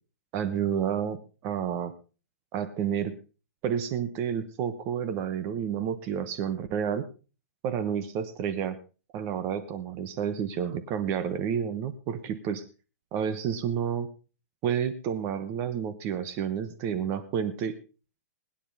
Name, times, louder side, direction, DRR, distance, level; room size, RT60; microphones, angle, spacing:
voice 1, 0.3-1.2 1.4-1.9 2.5-3.1 3.6-7.0 7.6-8.8 9.1-12.6 13.1-14.1 14.6-17.7, right 8 dB, 25° right, 12 dB, 1.1 m, -30 dB
21.0 x 10.0 x 3.5 m, 0.34 s
hypercardioid pair, 165°, 9 cm